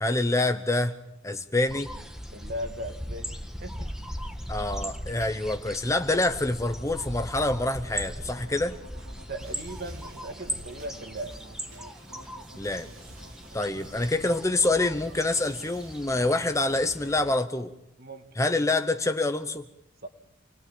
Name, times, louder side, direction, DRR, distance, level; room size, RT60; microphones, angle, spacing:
voice 1, 0.0-1.0 1.2-1.9 4.5-8.8 12.6-12.9 13.5-17.7 18.4-19.6, left 2 dB, 15° left, 9 dB, 0.9 m, -26 dB
sound 1, 1.7-17.4, equal, 5° right, 1.3 m, -39 dB
voice 2, 2.3-3.9 9.3-11.4 18.0-18.3 20.0-20.1, right 1 dB, 45° right, 7 dB, 1.9 m, -38 dB
sound 2, 7.6-16.8, right 2 dB, 85° right, 3.3 m, -50 dB
28.0 x 20.0 x 7.4 m, 0.82 s
head